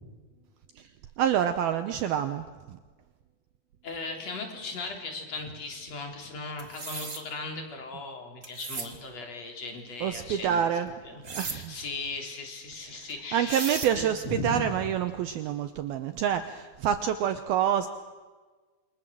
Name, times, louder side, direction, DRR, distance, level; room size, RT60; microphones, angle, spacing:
voice 1, 1.2-2.8 10.0-10.9 11.3-11.8 12.9-17.9, right 9 dB, 75° right, 9 dB, 2.4 m, -27 dB
voice 2, 3.8-10.6 11.0-14.7, left 3 dB, 40° left, 3 dB, 4.5 m, -37 dB
sound 1, 6.6-7.2 8.4-8.9 11.2-11.6 13.1-13.2 13.5-13.9, right 4 dB, 35° right, 1.2 m, -36 dB
28.5 x 25.5 x 7.6 m, 1.4 s
omnidirectional pair, 5.1 m